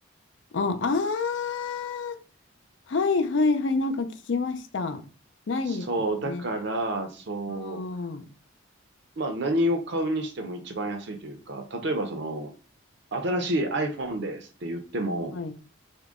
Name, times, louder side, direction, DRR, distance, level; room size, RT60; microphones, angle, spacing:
voice 1, 0.5-2.2 2.9-5.0 5.5-5.9 6.2-6.4 7.5-8.2 15.3-15.5, left 4 dB, 60° left, 0.5 m, -27 dB
voice 2, 5.7-7.8 9.2-12.5 13.1-15.4, right 1 dB, 60° right, 0.7 m, -29 dB
3.6 x 2.2 x 3.6 m
head